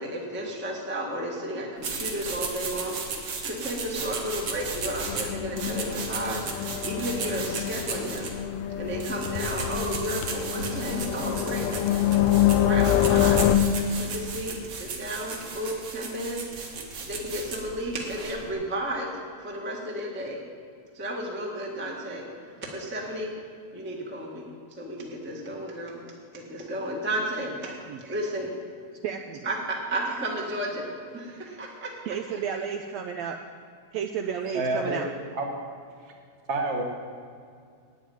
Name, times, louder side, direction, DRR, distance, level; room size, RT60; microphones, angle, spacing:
voice 1, 0.0-3.0 3.4-8.3 8.8-11.7 12.5-13.6 14.0-16.4 17.0-19.1 19.4-20.4 20.9-23.3 23.7-24.5 24.8-26.0 26.3-27.5 28.0-28.5 29.4-30.9 31.1-32.1, right 1 dB, 10° right, -1 dB, 0.7 m, -33 dB
sound 1, 1.8-18.5, right 4 dB, 55° right, 2.3 m, -35 dB
sound 2, 5.1-13.6, left 11 dB, 75° left, 1.6 m, -26 dB
voice 2, 27.6-28.0 29.0-29.4 32.1-33.4 33.9-35.1, right 7 dB, 80° right, 4 dB, 1.6 m, -32 dB
voice 3, 34.5-35.0 35.3-35.6 36.5-36.8, right 2 dB, 40° right, 1 dB, 1.0 m, -28 dB
9.0 x 8.1 x 9.3 m, 2.2 s
omnidirectional pair, 3.5 m